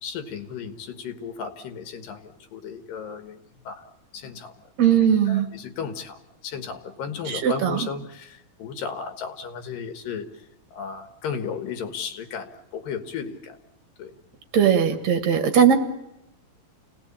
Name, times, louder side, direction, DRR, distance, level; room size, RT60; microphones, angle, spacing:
voice 1, 0.0-3.4 3.7-3.8 4.1-4.5 4.8-10.3 10.7-13.6 14.0-14.1, left 6 dB, 90° left, 8 dB, 3.3 m, -35 dB
voice 2, 4.8-5.5 7.3-7.8 14.5-15.8, right 8 dB, 55° right, 7 dB, 3.0 m, -19 dB
28.5 x 18.5 x 8.7 m, 0.88 s
omnidirectional pair, 3.8 m